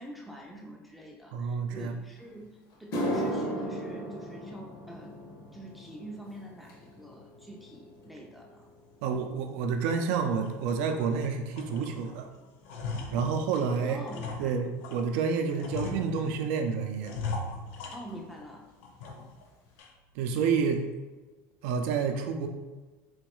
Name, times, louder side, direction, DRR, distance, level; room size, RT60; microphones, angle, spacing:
voice 1, 0.0-5.2 5.5-8.7 13.9-14.6 17.9-18.7, right 1 dB, ahead, -1 dB, 0.4 m, -45 dB
voice 2, 1.3-1.9 9.0-12.3 13.1-14.0 14.4-17.1 20.2-20.8 21.6-22.5, right 5 dB, 80° right, 5 dB, 0.4 m, -29 dB
sound 1, 2.2-2.3 2.7-11.2 11.5-11.9 12.7-12.8 15.5-15.6 17.3-17.4 17.6-17.8 18.1-18.6 19.0-19.1 19.7-19.8, equal, 55° left, 0.8 m, -38 dB
sound 2, 9.0-9.2 9.7-9.8 10.2-11.2 11.5-12.2 12.4-15.1 15.6-16.5 17.0-18.5 18.8-19.4 19.8-19.9 20.4-20.8, left 3 dB, 90° left, 0.5 m, -39 dB
4.2 x 2.3 x 3.0 m, 1.2 s
cardioid pair, 145°, 7 cm